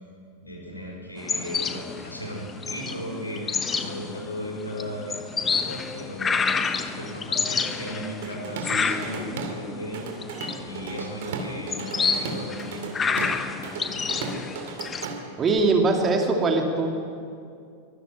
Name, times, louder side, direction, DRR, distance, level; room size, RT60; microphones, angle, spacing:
voice 1, 0.4-6.5 6.9-10.0 10.6-13.2 13.8-14.2, equal, 85° left, -1 dB, 4.8 m, -36 dB
sound 1, 1.2-15.1, left 5 dB, 20° left, 1.1 m, -29 dB
Drum kit / Drum, 8.2-9.6 9.9-15.6, right 4 dB, 55° right, 2.6 m, -35 dB
voice 2, 15.4-16.9, right 3 dB, 25° right, 2 dB, 2.8 m, -21 dB
23.5 x 13.0 x 8.9 m, 2.4 s
figure-of-eight pair, 90°, 0 cm